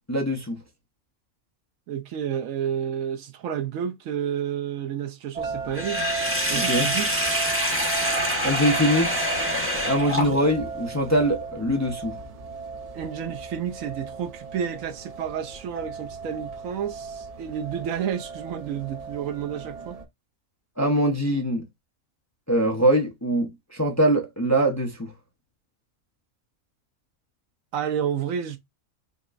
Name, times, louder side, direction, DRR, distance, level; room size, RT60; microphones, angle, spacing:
voice 1, 0.1-0.6 6.5-6.9 8.4-9.3 9.8-12.1 20.8-21.6 22.5-25.1, equal, 15° left, 0.7 m, -23 dB
voice 2, 1.9-6.0 6.5-7.1 12.9-20.0 27.7-28.6, right 8 dB, 70° right, 1.0 m, -30 dB
sound 1, 5.4-20.1, right 5 dB, 40° right, 0.6 m, -36 dB
Sink (filling or washing), 5.7-10.7, equal, 10° right, 1.1 m, -26 dB
5.2 x 2.9 x 2.5 m
omnidirectional pair, 1.5 m